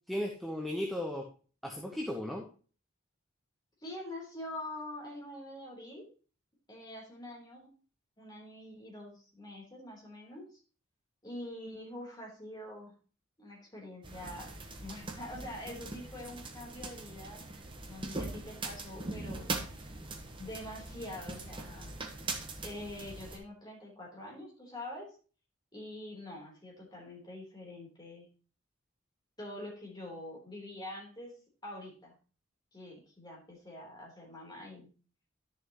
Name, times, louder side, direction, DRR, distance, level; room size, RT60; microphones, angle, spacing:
voice 1, 0.1-1.3 1.6-2.5, left 1 dB, ahead, -1 dB, 1.0 m, -35 dB
voice 2, 3.8-6.1 6.7-7.7 8.2-10.6 11.2-12.9 13.4-14.5 14.8-17.4 17.9-19.9 20.4-21.9 22.6-25.1 25.7-28.3 29.4-31.3 31.6-32.1 32.7-34.9, left 1 dB, 20° left, -3 dB, 3.6 m, -45 dB
sound 1, 14.0-23.4, right 2 dB, 25° right, 1.1 m, -41 dB
11.5 x 6.6 x 3.0 m, 0.37 s
head